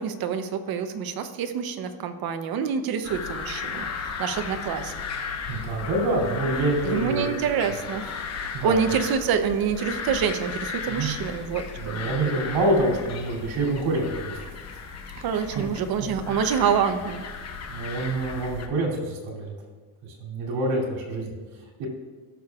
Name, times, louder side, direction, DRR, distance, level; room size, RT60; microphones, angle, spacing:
voice 1, 0.0-4.9 6.8-12.4 15.2-17.2, right 7 dB, 50° right, 8 dB, 0.8 m, -27 dB
sound 1, 3.0-18.7, left 5 dB, 35° left, 0.9 m, -35 dB
voice 2, 5.5-7.4 8.5-8.8 10.9-11.1 11.8-14.4 15.5-15.6 16.0-16.4 17.7-19.5 20.0-21.9, right 2 dB, 80° right, -2 dB, 3.0 m, -27 dB
17.5 x 6.7 x 2.4 m, 1.4 s
cardioid pair, 145°, 48 cm